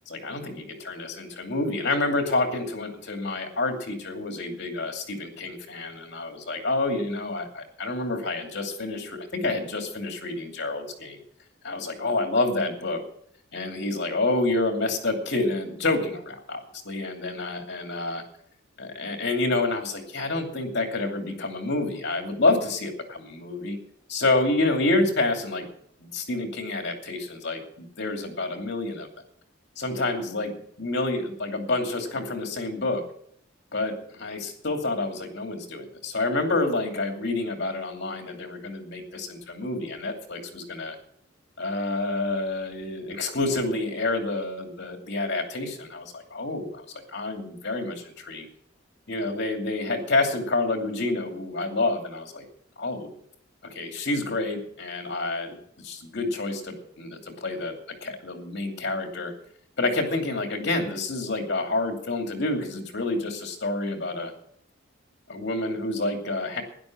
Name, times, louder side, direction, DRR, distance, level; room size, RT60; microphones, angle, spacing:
voice 1, 0.1-11.2 11.6-13.0 13.5-18.2 18.8-23.8 24.1-25.7 26.0-29.1 29.8-30.5 30.8-33.0 33.7-41.0 41.6-46.8 47.1-48.5 49.1-52.4 52.8-53.1 53.7-55.6 55.8-57.8 58.0-59.3 59.8-64.3 65.3-66.6, left 2 dB, 60° left, 4 dB, 2.7 m, -28 dB
12.0 x 10.5 x 6.1 m, 0.66 s
head